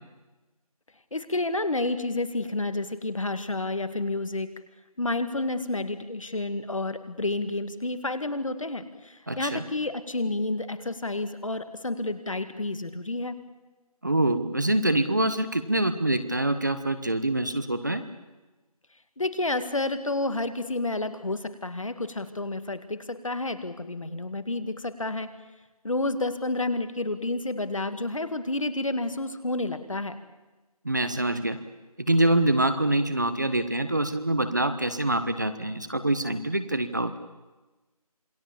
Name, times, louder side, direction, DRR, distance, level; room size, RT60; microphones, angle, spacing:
voice 1, 1.1-4.5 5.0-13.4 19.2-25.3 25.8-30.2, left 2 dB, 55° left, 10 dB, 2.3 m, -30 dB
voice 2, 9.3-9.6 14.0-18.0 30.8-31.6 32.0-37.2, right 1 dB, 30° right, 10 dB, 1.1 m, -25 dB
27.5 x 22.0 x 7.2 m, 1.2 s
figure-of-eight pair, 180°, 19 cm